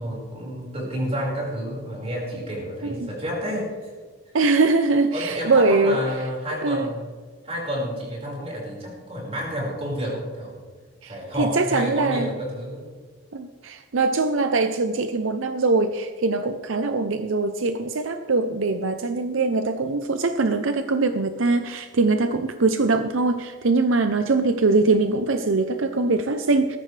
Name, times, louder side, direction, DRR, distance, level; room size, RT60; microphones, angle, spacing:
voice 1, 0.0-3.9 5.1-7.1 7.4-10.6 11.0-12.8, equal, 30° right, -3 dB, 5.2 m, -30 dB
voice 2, 4.3-6.0 6.6-6.9 11.0-12.3 13.3-26.8, right 3 dB, 70° right, 8 dB, 0.7 m, -22 dB
19.0 x 14.5 x 3.4 m, 1.5 s
head